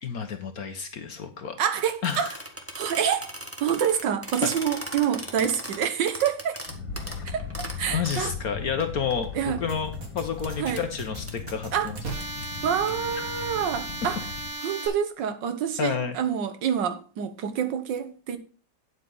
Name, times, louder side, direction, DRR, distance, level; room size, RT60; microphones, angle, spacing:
voice 1, 0.0-1.6 2.0-2.4 4.4-4.5 7.9-9.3 9.6-12.0 15.8-16.2, left 6 dB, 60° left, 1.3 m, -30 dB
voice 2, 1.6-2.4 2.7-3.3 3.6-6.6 7.2-8.3 9.3-9.6 10.6-10.8 11.7-11.9 12.6-14.2 14.6-18.4, right 8 dB, 70° right, 1.7 m, -27 dB
sound 1, 1.8-8.3 8.8-8.9 9.1-9.9 10.4-10.5 10.8-10.9 11.3-11.5 11.9-12.9, right 1 dB, 10° right, 1.3 m, -38 dB
sound 2, 6.7-14.5, left 6 dB, 85° left, 2.2 m, -38 dB
sound 3, 9.7-14.9, right 2 dB, 45° right, 2.5 m, -36 dB
9.2 x 8.1 x 3.9 m
omnidirectional pair, 2.0 m